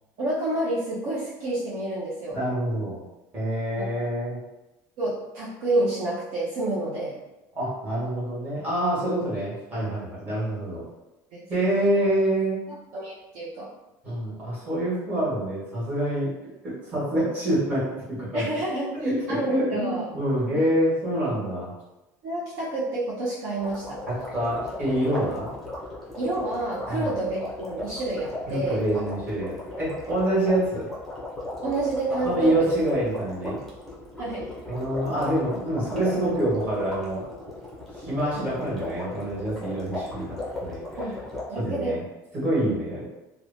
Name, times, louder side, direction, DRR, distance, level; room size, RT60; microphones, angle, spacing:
voice 1, 0.2-2.4 5.0-7.2 11.3-11.4 11.7-11.9 12.7-13.7 18.3-20.1 22.2-24.0 26.2-28.8 31.6-32.7 34.2-34.5 38.3-38.5 41.0-41.1 41.5-41.9, right 2 dB, 55° right, -7 dB, 0.6 m, -29 dB
voice 2, 2.3-3.0 3.3-4.4 7.5-10.8 11.5-12.6 14.0-16.3 16.6-18.4 18.9-21.7 24.1-25.5 26.9-27.1 28.5-30.8 32.2-33.6 34.7-37.2 38.0-40.8 41.5-42.0 42.3-43.1, right 1 dB, 20° right, -9 dB, 1.3 m, -26 dB
sound 1, 23.6-41.4, left 2 dB, 5° left, 0.6 m, -37 dB
2.9 x 2.1 x 2.6 m, 0.99 s
cardioid pair, 165°, 8 cm